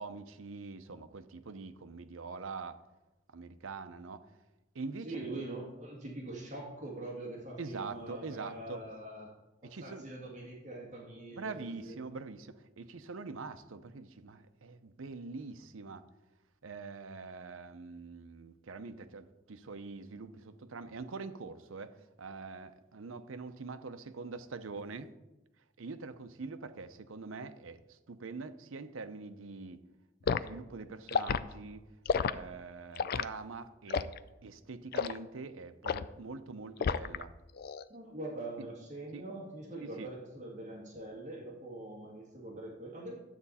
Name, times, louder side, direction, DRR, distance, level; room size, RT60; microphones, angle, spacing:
voice 1, 0.0-2.8 3.3-4.3 4.7-5.4 7.6-8.8 9.6-10.1 11.3-16.0 16.6-25.1 25.8-29.8 30.2-31.8 32.1-34.2 34.4-37.3 39.1-39.2 40.0-40.1, right 4 dB, 90° right, 0.7 m, -44 dB
voice 2, 5.0-9.3 9.6-12.0 37.9-43.2, right 2 dB, 35° right, 2.2 m, -43 dB
Liquid, 30.3-30.5 31.1-31.4 32.1-32.3 33.0-33.3 33.9-34.2 34.9-35.2 35.9-36.1 36.8-37.2 37.6-37.8, left 6 dB, 50° left, 0.4 m, -30 dB
12.0 x 8.0 x 4.2 m
head